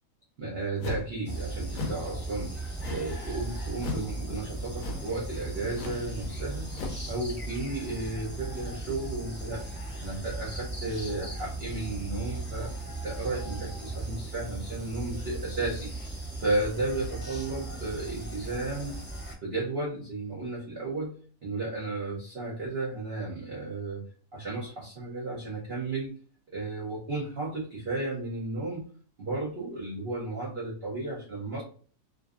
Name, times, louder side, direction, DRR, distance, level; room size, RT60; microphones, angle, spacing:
voice 1, 0.4-6.8 7.1-9.6 10.0-12.7 13.0-15.9 16.4-18.9 19.4-24.0 24.3-26.1 26.5-28.8 29.2-31.6, right 2 dB, 50° right, -3 dB, 0.7 m, -33 dB
sound 1, 0.8-1.2 1.7-2.1 2.8-3.2 3.8-4.1 4.8-5.1 5.7-6.1 6.7-7.1, left 3 dB, 70° left, 0.9 m, -36 dB
sound 2, 1.2-19.3, right 2 dB, 10° left, 0.6 m, -37 dB
2.6 x 2.5 x 2.3 m, 0.42 s
omnidirectional pair, 1.8 m